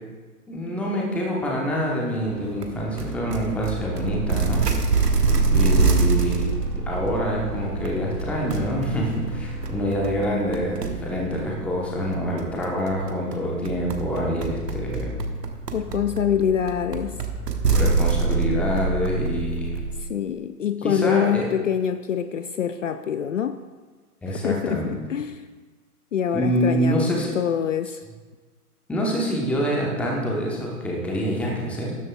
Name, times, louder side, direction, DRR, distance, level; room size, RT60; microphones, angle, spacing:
voice 1, 0.5-4.9 5.5-6.5 6.9-15.2 17.7-19.8 20.8-21.4 24.2-25.0 26.3-27.3 28.9-32.0, equal, 5° left, -2 dB, 0.8 m, -26 dB
sound 1, 2.2-10.3, left 3 dB, 10° right, 2.6 m, -38 dB
sound 2, 2.6-20.0, right 4 dB, 85° right, 1.2 m, -26 dB
voice 2, 15.7-17.2 20.0-23.6 24.3-25.4 26.1-28.0, left 8 dB, 55° left, 10 dB, 0.5 m, -25 dB
13.0 x 10.5 x 2.3 m, 1.3 s
figure-of-eight pair, 135°, 47 cm